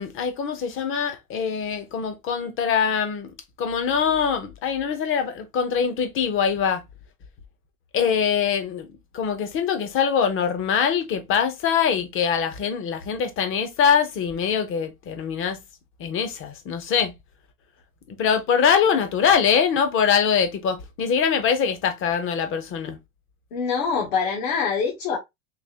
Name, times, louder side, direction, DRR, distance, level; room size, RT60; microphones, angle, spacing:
voice 1, 0.0-6.8 7.9-8.9 9.1-15.6 16.0-17.1 18.1-23.0, left 7 dB, 30° left, 0.9 m, -23 dB
voice 2, 23.5-25.2, left 5 dB, 65° left, 1.6 m, -24 dB
3.9 x 2.9 x 2.8 m
supercardioid pair, 145°, 42 cm